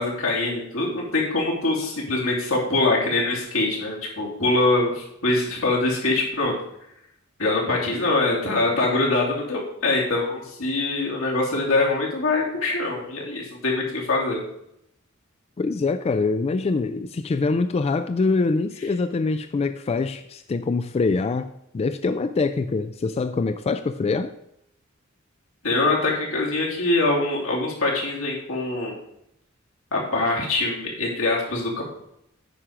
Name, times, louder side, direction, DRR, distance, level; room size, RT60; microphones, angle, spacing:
voice 1, 0.0-6.5 7.4-14.4 25.6-28.9 29.9-31.8, left 2 dB, 80° left, -2 dB, 2.8 m, -23 dB
voice 2, 15.6-24.3, left 3 dB, 30° left, 10 dB, 0.3 m, -24 dB
9.3 x 5.0 x 5.8 m, 0.77 s
head